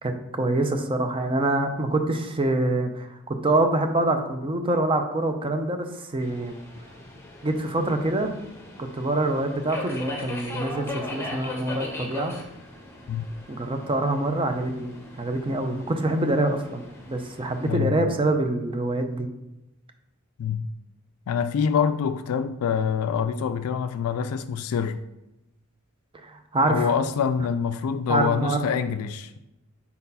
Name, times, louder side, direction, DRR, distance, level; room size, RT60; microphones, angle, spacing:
voice 1, 0.0-6.5 7.4-8.3 8.8-12.4 13.5-19.3 26.2-26.9 28.1-28.6, right 2 dB, 25° right, 0.6 m, -25 dB
Subway metro underground, 6.2-17.7, left 2 dB, 10° left, 1.0 m, -40 dB
voice 2, 17.6-18.1 20.4-20.7 21.3-25.0 26.6-29.4, left 7 dB, 75° left, 0.3 m, -25 dB
4.5 x 4.1 x 5.4 m
head